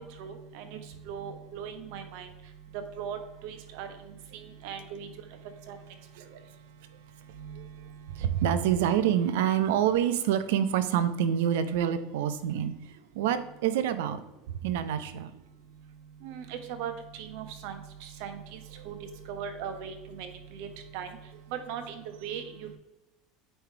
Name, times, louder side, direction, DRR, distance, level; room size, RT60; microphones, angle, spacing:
voice 1, 0.2-0.8 1.0-2.3 2.7-5.1 5.7-5.8 7.4-7.5 16.2-18.6 18.8-19.0 19.3-21.1 21.5-22.8, right 7 dB, 65° right, 6 dB, 1.1 m, -39 dB
voice 2, 8.1-12.7 13.1-14.2 14.6-15.3, right 9 dB, 85° right, 11 dB, 0.7 m, -26 dB
8.8 x 3.4 x 4.6 m, 1.0 s
supercardioid pair, 145°, 0 cm